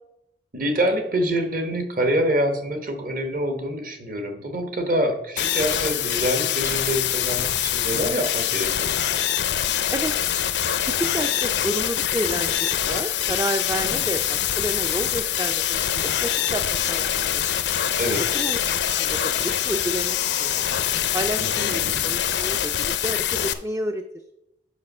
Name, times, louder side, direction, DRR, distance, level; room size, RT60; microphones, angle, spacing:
voice 1, 0.5-9.0 13.9-14.0 18.0-18.2 21.7-22.0, right 1 dB, 50° right, 6 dB, 1.1 m, -26 dB
sound 1, 5.4-23.5, left 10 dB, 65° left, 0.5 m, -24 dB
voice 2, 10.5-17.4 18.3-18.6 18.9-20.7 21.1-24.0, right 1 dB, 15° right, 6 dB, 0.4 m, -30 dB
6.5 x 6.0 x 5.3 m, 0.84 s
head